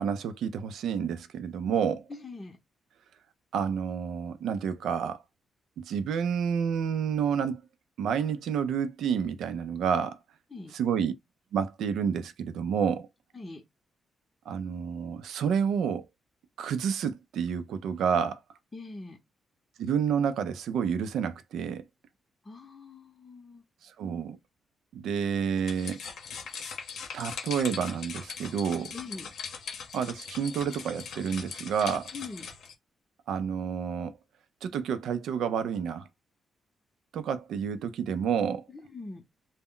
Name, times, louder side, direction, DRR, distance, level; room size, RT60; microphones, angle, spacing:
voice 1, 0.0-2.0 3.5-5.2 5.8-7.6 8.0-10.2 10.7-11.1 11.5-13.1 14.5-16.0 16.6-18.4 19.8-21.8 23.8-24.4 24.9-26.0 27.1-28.9 29.9-32.1 33.3-34.1 34.6-36.1 37.1-38.7, right 7 dB, 85° right, 0.4 m, -29 dB
voice 2, 2.1-2.6 10.5-10.7 13.3-13.6 18.7-19.2 22.4-23.6 28.9-29.3 32.1-32.5 38.7-39.3, left 3 dB, 25° left, 0.7 m, -42 dB
sound 1, 25.6-32.7, left 6 dB, 75° left, 0.7 m, -40 dB
2.1 x 2.0 x 3.7 m
cardioid pair, 85°, 0 cm